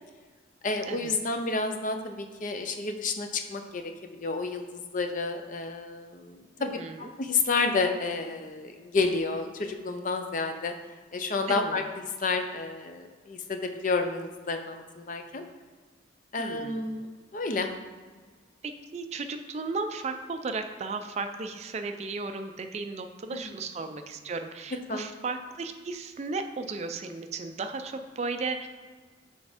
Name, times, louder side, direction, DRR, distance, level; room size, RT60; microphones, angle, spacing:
voice 1, 0.6-6.7 7.2-10.7 11.1-11.8 12.2-15.4 16.3-17.7 23.3-23.6 24.9-25.1, left 3 dB, 45° left, 5 dB, 0.5 m, -30 dB
voice 2, 6.8-7.1 11.5-11.8 16.4-16.8 18.6-28.7, right 3 dB, 35° right, 7 dB, 0.4 m, -35 dB
6.2 x 3.4 x 5.0 m, 1.5 s
head